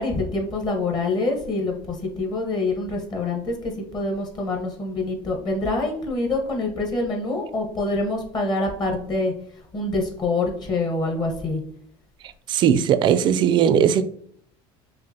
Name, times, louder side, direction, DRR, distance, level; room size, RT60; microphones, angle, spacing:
voice 1, 0.0-9.3 9.7-11.6, left 2 dB, 35° left, 1.1 m, -26 dB
voice 2, 12.5-14.0, right 8 dB, 40° right, 0.4 m, -18 dB
5.5 x 2.5 x 2.7 m
cardioid pair, 125°, 12 cm